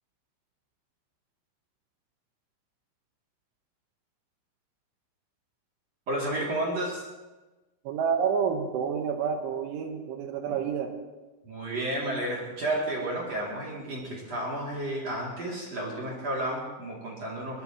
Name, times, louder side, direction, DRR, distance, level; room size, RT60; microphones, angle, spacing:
voice 1, 6.1-7.0 10.5-10.6 11.4-17.6, right 1 dB, 40° right, -4 dB, 3.1 m, -32 dB
voice 2, 7.9-10.9, right 7 dB, 75° right, 5 dB, 3.5 m, -29 dB
23.0 x 18.5 x 3.1 m, 1.2 s
omnidirectional pair, 5.9 m